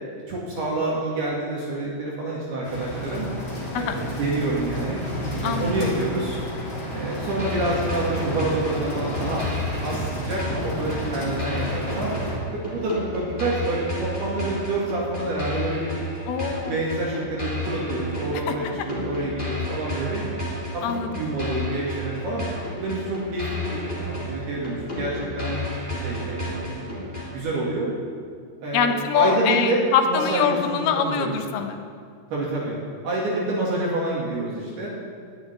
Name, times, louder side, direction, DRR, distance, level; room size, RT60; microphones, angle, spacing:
voice 1, 0.3-3.3 3.7-5.0 5.4-6.4 6.9-9.4 9.8-12.1 12.5-15.9 16.7-20.2 20.7-22.4 22.7-25.6 26.0-27.9 28.6-29.8 30.1-31.4 32.3-32.8 33.0-34.9, right 2 dB, 55° right, -5 dB, 3.9 m, -28 dB
sound 1, 2.6-12.4, equal, 30° left, 2.6 m, -31 dB
voice 2, 5.4-5.7 16.3-16.8 18.5-18.6 20.8-21.2 28.7-31.9, left 7 dB, 75° left, 6 dB, 3.6 m, -24 dB
sound 2, 7.4-27.4, left 1 dB, 15° left, 2.3 m, -32 dB
19.5 x 7.1 x 9.8 m, 2.1 s
omnidirectional pair, 6.0 m